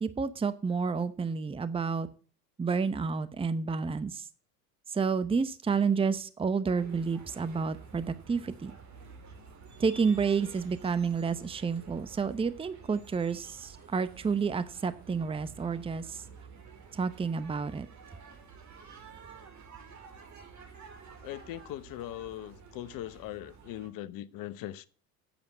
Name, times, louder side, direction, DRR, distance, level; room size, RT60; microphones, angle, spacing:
voice 1, 0.0-2.1 2.6-4.3 4.9-8.7 9.8-16.2 16.9-17.9, right 5 dB, 10° right, 0.8 m, -30 dB
sound 1, 6.7-23.9, right 5 dB, 40° right, 2.8 m, -51 dB
voice 2, 21.2-24.9, left 13 dB, 50° left, 0.9 m, -40 dB
8.6 x 7.1 x 8.0 m
hypercardioid pair, 85°, 45 cm